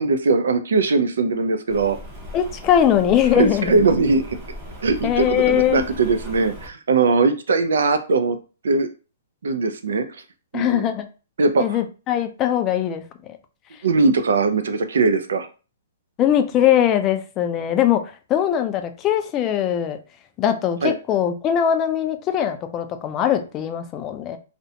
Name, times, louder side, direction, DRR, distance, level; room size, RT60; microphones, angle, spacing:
voice 1, 0.0-2.0 2.9-3.0 3.3-4.4 4.8-8.4 8.6-8.9 9.4-10.0 10.5-10.8 11.4-11.8 13.8-15.5 20.8-20.9, right 4 dB, 80° right, 9 dB, 0.4 m, -20 dB
Rain, 1.7-6.7, equal, 20° right, 0.7 m, -37 dB
voice 2, 2.3-3.7 5.0-5.9 10.5-11.1 11.6-13.4 16.2-18.0 18.3-20.0 20.4-24.4, left 10 dB, 25° left, 7 dB, 0.3 m, -21 dB
2.5 x 2.1 x 2.7 m, 0.34 s
hypercardioid pair, 150°, 0 cm